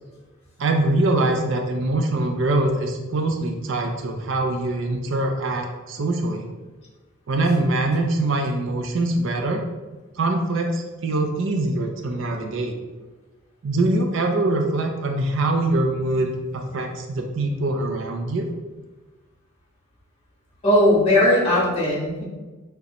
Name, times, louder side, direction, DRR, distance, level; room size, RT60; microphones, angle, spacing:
voice 1, 0.6-6.5 7.3-9.6 10.2-12.7 13.6-18.5, right 2 dB, 60° right, 3 dB, 0.5 m, -23 dB
voice 2, 20.6-22.2, left 1 dB, 30° left, -6 dB, 1.4 m, -18 dB
6.5 x 2.2 x 2.9 m, 1.2 s
head